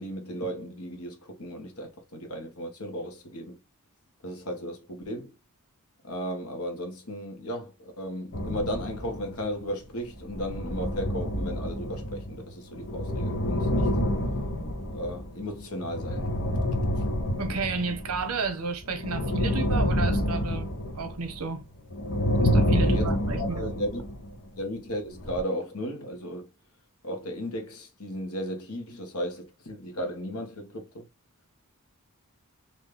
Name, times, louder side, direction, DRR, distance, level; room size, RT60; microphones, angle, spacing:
voice 1, 0.0-3.6 4.2-5.3 6.0-14.0 14.9-16.3 16.9-17.0 22.8-23.1 23.4-24.0 24.6-26.5 27.0-31.0, equal, 75° left, 1.5 m, -35 dB
sound 1, 8.3-9.6 10.1-18.5 18.8-21.6 21.9-24.3 25.1-25.4, equal, 55° left, 1.0 m, -28 dB
voice 2, 17.4-20.7 20.9-21.6 22.4-23.6, right 4 dB, 80° right, 1.0 m, -32 dB
4.2 x 2.8 x 3.3 m
head